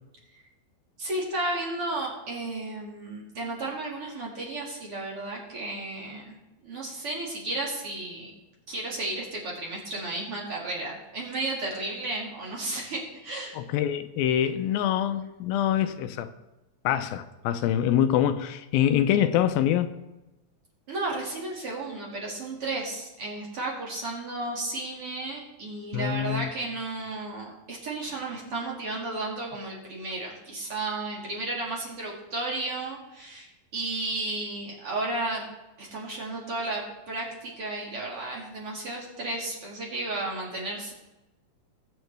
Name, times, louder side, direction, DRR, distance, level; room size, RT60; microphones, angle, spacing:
voice 1, 1.0-6.4 6.6-8.3 8.7-13.6 20.9-35.4 35.8-40.9, right 2 dB, 40° right, 2.8 m, -33 dB
voice 2, 13.5-16.3 16.8-19.9 25.9-26.5, left 10 dB, 90° left, 2.4 m, -25 dB
19.5 x 8.1 x 3.4 m
omnidirectional pair, 4.2 m